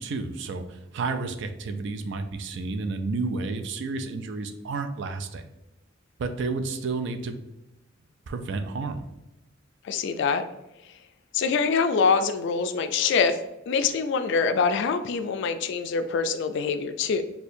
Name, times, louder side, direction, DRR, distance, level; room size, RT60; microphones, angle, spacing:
voice 1, 0.0-5.4 6.2-7.4 8.3-9.1, right 3 dB, 60° right, 7 dB, 0.4 m, -31 dB
voice 2, 9.8-10.4 11.3-13.4 13.7-17.2, left 5 dB, 60° left, 9 dB, 0.3 m, -24 dB
4.3 x 2.2 x 2.6 m, 0.93 s
head